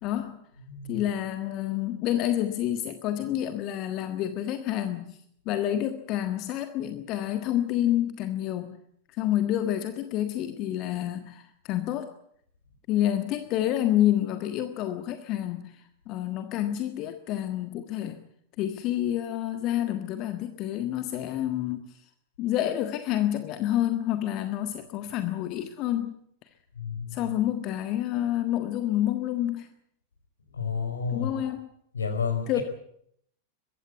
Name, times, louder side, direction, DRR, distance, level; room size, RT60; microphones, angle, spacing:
voice 1, 0.0-0.4 0.9-5.2 5.4-8.8 9.1-12.1 12.9-18.2 18.6-22.0 22.4-26.2 27.1-29.7 31.1-31.7 32.5-32.6, left 12 dB, 40° left, 8 dB, 1.5 m, -28 dB
voice 2, 0.7-1.1 26.8-27.3 30.5-31.3 31.9-32.6, left 6 dB, 75° left, 8 dB, 4.8 m, -31 dB
22.5 x 15.5 x 9.4 m, 0.71 s
figure-of-eight pair, 90°, 0 cm